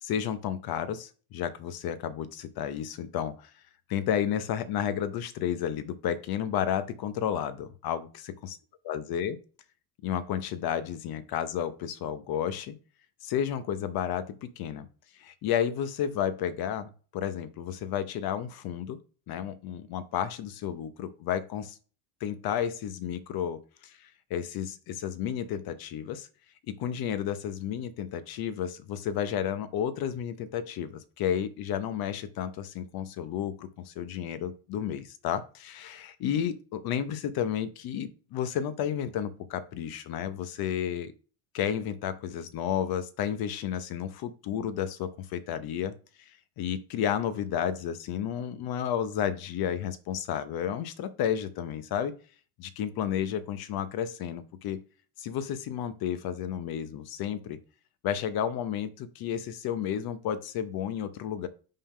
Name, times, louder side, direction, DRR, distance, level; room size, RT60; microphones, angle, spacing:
voice 1, 0.0-3.5 3.9-8.6 8.9-9.4 10.0-12.8 13.2-14.9 15.2-19.0 19.3-21.8 22.2-26.3 26.8-41.1 41.5-45.9 46.6-52.1 52.6-54.8 55.2-57.6 58.0-61.5, left 9 dB, 55° left, 12 dB, 0.9 m, -32 dB
5.4 x 3.7 x 5.5 m, 0.38 s
cardioid pair, 115°, 44 cm